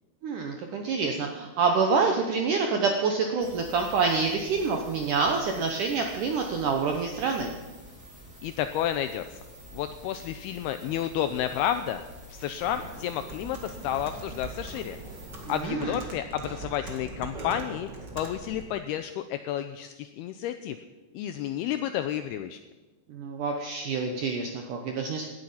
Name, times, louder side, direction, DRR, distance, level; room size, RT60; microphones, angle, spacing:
voice 1, 0.2-7.5 15.6-15.9 23.1-25.3, right 4 dB, 70° right, 3 dB, 2.0 m, -27 dB
sound 1, 3.4-15.6, equal, 5° right, 6.1 m, -48 dB
voice 2, 8.4-9.4 9.7-12.0 12.3-15.0 15.5-17.9 18.2-20.8 21.1-22.6, left 10 dB, 80° left, 9 dB, 2.3 m, -31 dB
Computer keyboard, 12.6-18.8, right 3 dB, 35° right, 1.9 m, -42 dB
18.0 x 12.0 x 5.7 m, 1.2 s
omnidirectional pair, 5.0 m